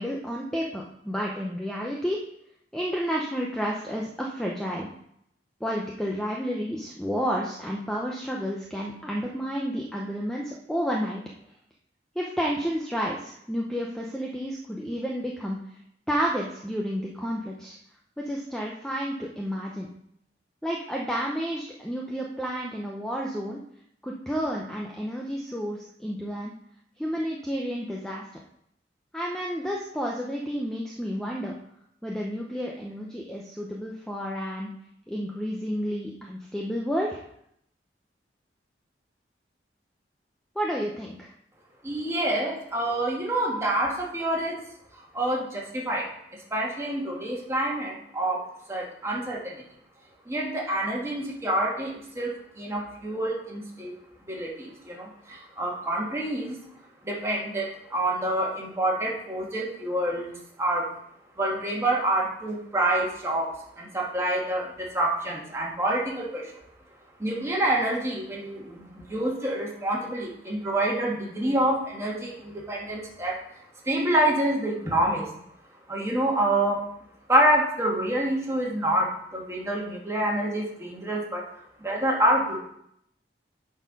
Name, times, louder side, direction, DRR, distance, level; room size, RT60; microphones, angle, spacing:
voice 1, 0.0-2.2 2.7-4.9 5.6-11.2 12.1-15.6 16.1-17.8 18.2-19.9 20.6-23.6 24.0-26.5 27.0-28.3 29.1-31.5 32.0-34.7 35.1-37.2 40.5-41.3, equal, 5° left, -2 dB, 0.7 m, -31 dB
voice 2, 41.8-44.6 44.9-46.1 46.5-48.4 48.7-49.6 50.3-53.9 54.3-56.6 57.0-60.3 60.6-60.9 61.4-66.6 67.2-73.4 73.8-75.3 75.9-76.8 77.3-81.4 81.8-82.6, right 1 dB, 15° right, -3 dB, 1.9 m, -27 dB
9.6 x 4.5 x 5.3 m, 0.72 s
head